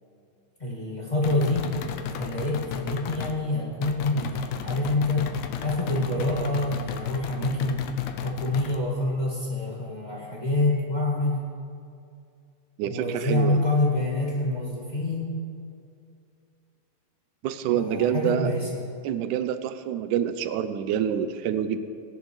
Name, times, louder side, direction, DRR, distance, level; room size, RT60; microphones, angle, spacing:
voice 1, 0.6-1.7 2.2-5.3 5.6-7.9 8.2-11.4 12.8-15.4 17.7-18.8, left 2 dB, 20° left, -5 dB, 1.3 m, -26 dB
sound 1, 1.2-3.4 3.8-8.8, left 8 dB, 90° left, 1.5 m, -34 dB
voice 2, 12.8-13.6 17.4-18.5 19.0-21.8, right 9 dB, 80° right, 11 dB, 2.0 m, -27 dB
20.0 x 10.5 x 3.2 m, 2.4 s
omnidirectional pair, 3.8 m